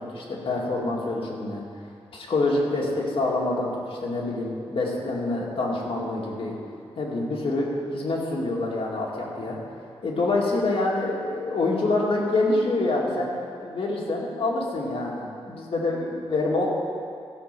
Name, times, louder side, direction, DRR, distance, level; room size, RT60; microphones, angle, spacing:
voice 1, 0.0-1.6 2.1-6.6 7.0-9.6 10.0-16.7, left 2 dB, 60° left, -3 dB, 2.2 m, -26 dB
14.5 x 5.6 x 6.8 m, 2.3 s
wide cardioid pair, 110°, 11 cm